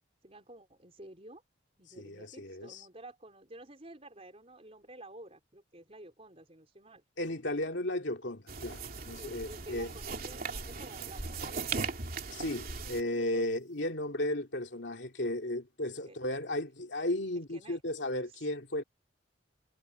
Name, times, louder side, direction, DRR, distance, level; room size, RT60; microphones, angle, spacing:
voice 1, 0.2-1.4 1.8-7.0 9.2-11.9 12.8-13.5 16.0-16.2 17.3-17.8 18.3-18.5, right 1 dB, 30° right, 4.4 m, -52 dB
voice 2, 2.0-2.8 7.2-9.9 12.3-18.8, left 1 dB, 65° left, 2.7 m, -35 dB
sound 1, 8.5-13.0, right 4 dB, 50° right, 3.1 m, -38 dB
head